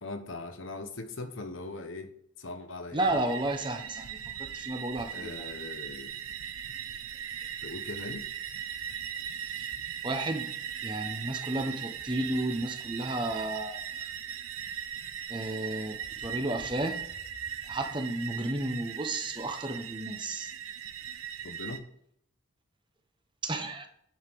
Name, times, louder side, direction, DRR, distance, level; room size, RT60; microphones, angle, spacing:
voice 1, 0.0-2.1 2.4-3.1 5.1-6.1 7.6-8.3 21.4-21.9, left 2 dB, 65° left, 7 dB, 1.1 m, -40 dB
voice 2, 2.9-5.5 9.4-9.7 10.0-10.5 10.8-13.8 15.3-17.0 17.7-20.5 23.4-23.9, right 2 dB, 25° right, 6 dB, 1.0 m, -33 dB
sound 1, 3.0-21.8, right 8 dB, 90° right, 0.9 m, -39 dB
10.0 x 5.8 x 4.7 m, 0.68 s
head